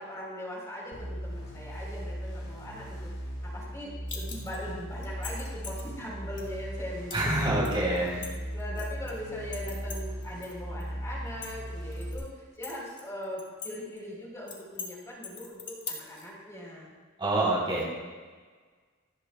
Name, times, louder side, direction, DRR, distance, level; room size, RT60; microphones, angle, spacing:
voice 1, 0.0-3.0 3.4-7.9 8.2-16.9, equal, 15° left, -4 dB, 4.0 m, -40 dB
sound 1, 0.9-12.2, equal, 75° left, 4.4 m, -38 dB
sound 2, 4.1-4.6 5.0-5.8 6.4-6.5 7.1-7.3 7.6-9.1 9.5-10.5 10.8-10.9 11.3-12.2 12.6-13.7 14.0-14.1 14.5-14.9 15.2-16.2, left 5 dB, 35° left, 2.3 m, -40 dB
voice 2, 7.1-8.1 17.2-17.9, right 1 dB, 25° right, -5 dB, 3.7 m, -26 dB
26.5 x 9.8 x 2.3 m, 1.4 s
head